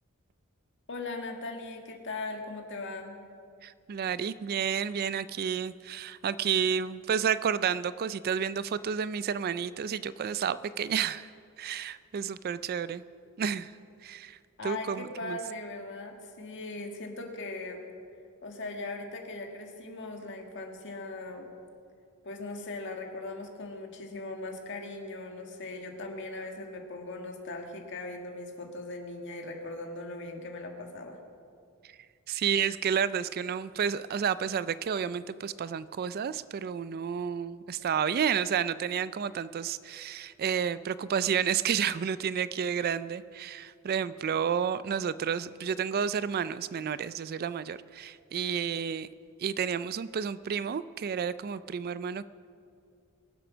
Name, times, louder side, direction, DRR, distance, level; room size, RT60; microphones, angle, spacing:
voice 1, 0.9-3.2 14.6-17.8 18.4-21.5 22.2-31.2, left 2 dB, 55° left, 3 dB, 1.8 m, -39 dB
voice 2, 3.6-11.3 11.6-13.0 13.4-13.7 14.0-15.4 32.3-49.1 49.4-52.2, right 7 dB, 45° right, 16 dB, 0.3 m, -31 dB
22.5 x 7.8 x 6.2 m, 2.3 s
head